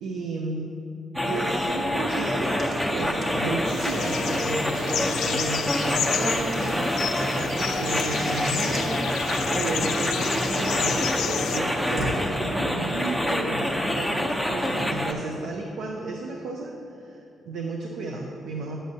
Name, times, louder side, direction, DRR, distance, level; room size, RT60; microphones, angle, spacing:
voice 1, 0.0-0.7 1.2-18.8, right 2 dB, 85° right, 0 dB, 0.6 m, -33 dB
sound 1, 1.1-15.1, left 1 dB, ahead, 0.7 m, -26 dB
Walk footsteps / Bird vocalization bird call bird song, 2.4-12.3, right 1 dB, 60° right, 1.7 m, -38 dB
sound 2, 3.7-11.6, left 9 dB, 80° left, 0.3 m, -31 dB
9.5 x 7.5 x 2.7 m, 2.7 s
cardioid pair, 70°, 0 cm